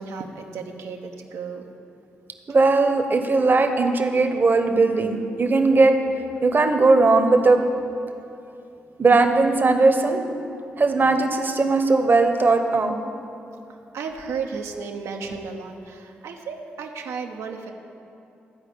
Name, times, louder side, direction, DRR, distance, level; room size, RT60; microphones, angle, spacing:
voice 1, 0.0-1.7 13.7-17.7, right 5 dB, 75° right, 3 dB, 1.0 m, -34 dB
voice 2, 2.5-6.0 6.4-7.6 9.0-10.2 10.8-12.9, right 3 dB, 40° right, 6 dB, 1.1 m, -18 dB
12.5 x 4.9 x 8.4 m, 2.7 s
hypercardioid pair, 45°, 5 cm